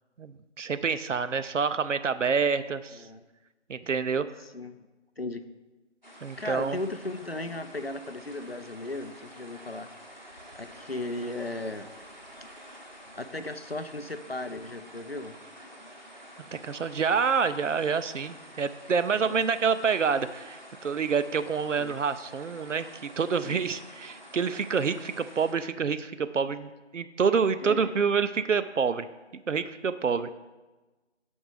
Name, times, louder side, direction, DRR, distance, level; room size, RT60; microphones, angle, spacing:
voice 1, 0.2-3.0 3.7-4.3 6.2-6.8 16.5-29.1 29.5-30.3, right 5 dB, 80° right, 13 dB, 0.5 m, -27 dB
voice 2, 2.9-3.2 4.5-4.8 5.2-5.4 6.4-9.9 10.6-11.9 13.1-15.4 19.2-19.4 21.8-22.0 23.4-23.6 27.6-27.9 30.1-30.3, left 2 dB, 55° left, 10 dB, 0.4 m, -36 dB
sound 1, 6.0-25.5, equal, 40° left, 0.9 m, -49 dB
6.3 x 5.3 x 4.8 m, 1.2 s
figure-of-eight pair, 180°, 36 cm